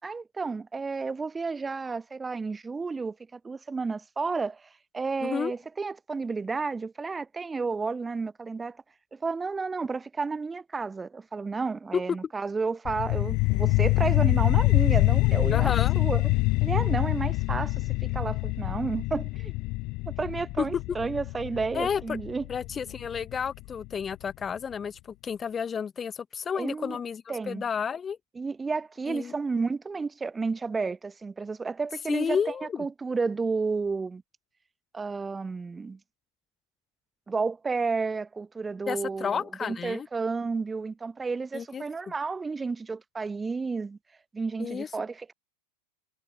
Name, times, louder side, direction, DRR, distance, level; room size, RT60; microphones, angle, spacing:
voice 1, 0.0-4.6 4.9-8.8 9.1-16.2 16.6-19.5 20.1-22.4 26.5-27.0 27.3-27.6 28.4-32.4 32.8-34.2 34.9-36.0 37.3-44.0 44.3-45.3, right 4 dB, 15° right, 4.5 m, -31 dB
voice 2, 5.2-5.5 11.9-12.2 15.5-16.0 21.7-22.2 22.5-28.2 29.1-29.3 32.1-32.9 38.9-40.1 41.5-41.8 44.6-44.9, left 7 dB, 20° left, 2.9 m, -31 dB
sound 1, 12.8-23.9, left 24 dB, 40° left, 0.6 m, -25 dB
figure-of-eight pair, 90°, 0 cm